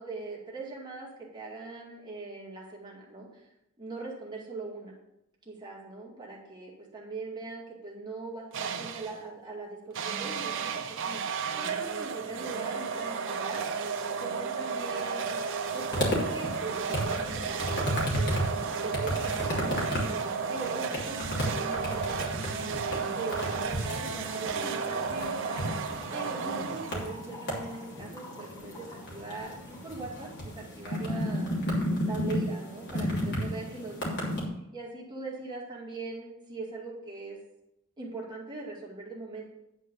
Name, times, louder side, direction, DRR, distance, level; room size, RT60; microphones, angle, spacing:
voice 1, 0.0-3.5 3.8-5.0 5.5-13.6 14.2-15.4 15.7-20.1 20.5-22.8 23.1-25.7 26.1-31.5 32.1-34.3 34.7-37.4 38.0-39.4, right 3 dB, 20° right, -3 dB, 2.2 m, -41 dB
sound 1, 8.5-9.2 9.9-27.3, right 5 dB, 60° right, 0.8 m, -33 dB
sound 2, 15.6-34.4, equal, 55° left, 2.9 m, -33 dB
Trickle dribble / Fill (with liquid), 23.3-30.4, left 2 dB, 15° left, 2.4 m, -50 dB
10.0 x 4.6 x 6.9 m, 0.83 s
head